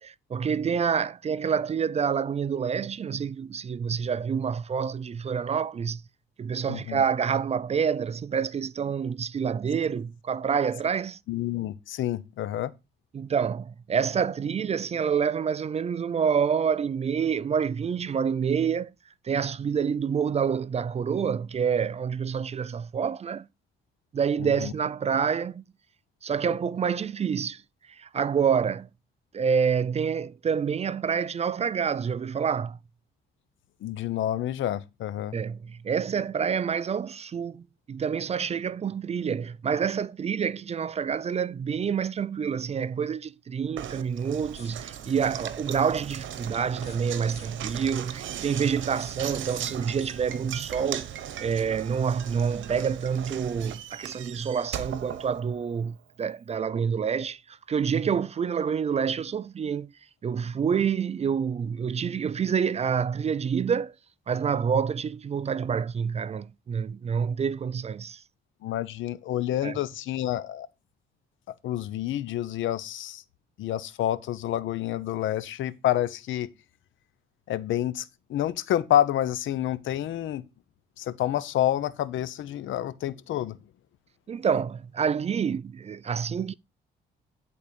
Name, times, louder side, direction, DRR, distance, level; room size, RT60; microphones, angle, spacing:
voice 1, 0.0-6.0 6.4-11.2 13.1-18.9 19.2-23.5 24.1-25.6 26.2-27.6 27.9-28.9 29.3-32.8 35.3-51.1 51.4-59.9 60.2-63.9 64.3-68.2 69.6-69.8 84.3-86.5, right 7 dB, 30° right, 0.4 m, -27 dB
voice 2, 6.7-7.0 11.3-12.7 24.4-24.7 33.8-35.4 68.6-70.7 71.6-73.2 73.6-76.5 77.5-80.4 81.0-83.6, left 12 dB, 75° left, 0.8 m, -28 dB
Knock, 43.8-55.9, right 10 dB, 75° right, 1.0 m, -38 dB
sound 1, 44.5-45.1 46.7-47.8 48.7-50.6, left 4 dB, 35° left, 2.5 m, -54 dB
11.0 x 4.3 x 5.2 m
cardioid pair, 90°, 20 cm